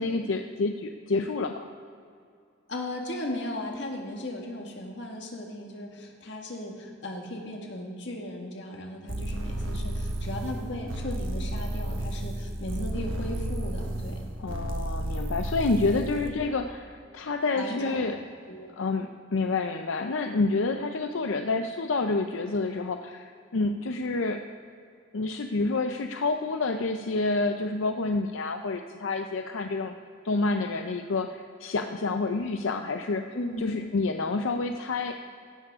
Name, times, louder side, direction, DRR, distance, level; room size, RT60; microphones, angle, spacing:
voice 1, 0.0-1.7 14.4-18.2 18.8-24.4 25.1-29.9 30.2-33.2 33.6-35.1, left 3 dB, 90° left, 6 dB, 0.6 m, -28 dB
voice 2, 2.7-14.3 15.9-16.4 17.5-18.0 18.5-18.7 33.3-33.9, left 1 dB, 65° left, 1 dB, 1.8 m, -36 dB
sound 1, 9.1-16.3, right 1 dB, 85° right, 1.2 m, -32 dB
16.5 x 11.5 x 3.6 m, 2.4 s
head